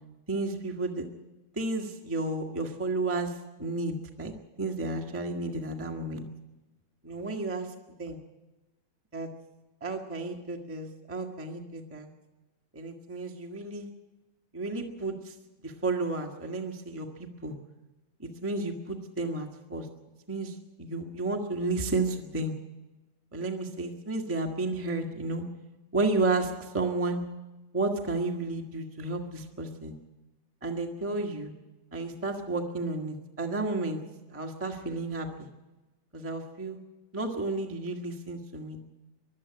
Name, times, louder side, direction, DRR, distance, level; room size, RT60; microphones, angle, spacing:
voice 1, 0.3-1.0 1.5-4.3 4.6-6.2 7.0-7.7 8.0-8.2 9.1-9.3 9.8-12.1 12.7-13.9 14.5-15.3 15.6-17.6 18.2-19.9 20.3-22.5 23.3-25.4 25.9-27.2 27.7-29.9 30.6-31.5 31.9-34.0 34.3-35.5 36.1-36.8 37.1-38.8, right 2 dB, 10° right, 2 dB, 0.9 m, -32 dB
21.5 x 12.5 x 9.8 m, 1.1 s
omnidirectional pair, 3.4 m